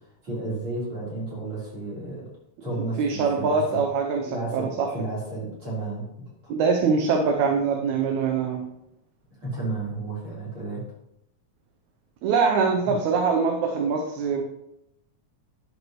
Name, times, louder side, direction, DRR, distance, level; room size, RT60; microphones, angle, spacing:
voice 1, 0.2-2.2 2.6-3.8 4.2-6.0 6.4-6.5 9.4-10.9 12.9-13.0, right 2 dB, 45° right, -6 dB, 4.5 m, -32 dB
voice 2, 3.0-4.9 6.5-8.7 12.2-14.4, right 5 dB, 75° right, 3 dB, 2.0 m, -23 dB
11.0 x 6.6 x 3.1 m, 0.82 s
omnidirectional pair, 3.5 m